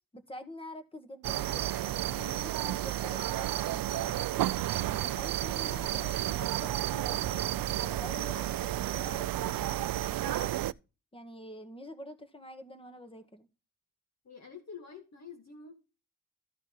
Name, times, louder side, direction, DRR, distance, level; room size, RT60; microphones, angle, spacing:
voice 1, 0.1-4.5 4.9-10.5 11.1-13.5, left 1 dB, 15° left, 1.6 m, -47 dB
sound 1, 1.2-10.7, right 13 dB, 75° right, 0.5 m, -32 dB
voice 2, 14.2-15.7, left 5 dB, 50° left, 2.3 m, -47 dB
13.5 x 5.3 x 3.8 m
wide cardioid pair, 95°, 34 cm